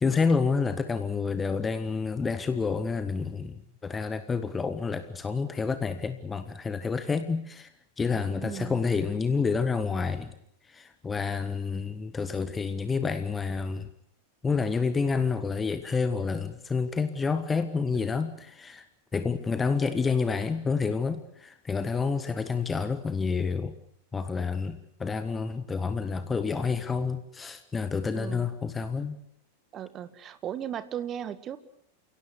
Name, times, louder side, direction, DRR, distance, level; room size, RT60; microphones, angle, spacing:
voice 1, 0.0-7.7 8.0-10.3 10.7-13.9 14.4-18.8 19.1-23.7 24.1-29.2, left 5 dB, 15° left, 11 dB, 1.5 m, -29 dB
voice 2, 8.4-8.8 28.1-28.5 29.7-31.6, right 9 dB, 30° right, 13 dB, 1.8 m, -36 dB
29.5 x 17.5 x 8.2 m, 0.71 s
figure-of-eight pair, 90°, 0 cm